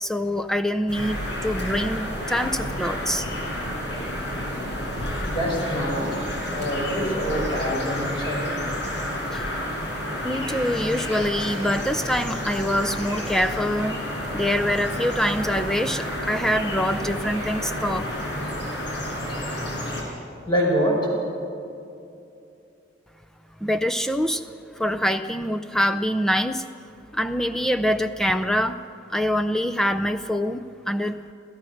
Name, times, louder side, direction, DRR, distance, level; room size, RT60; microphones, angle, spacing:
voice 1, 0.0-3.3 9.3-9.6 10.2-14.0 14.3-18.1 23.6-24.5 24.8-26.6 27.1-28.8 29.1-31.2, equal, 5° left, 7 dB, 0.5 m, -25 dB
sound 1, 0.9-20.0, left 1 dB, 70° left, 5.0 m, -30 dB
voice 2, 5.3-6.1 6.5-8.5 20.5-21.0, equal, 25° left, -3 dB, 6.1 m, -25 dB
27.0 x 16.5 x 6.5 m, 2.6 s
head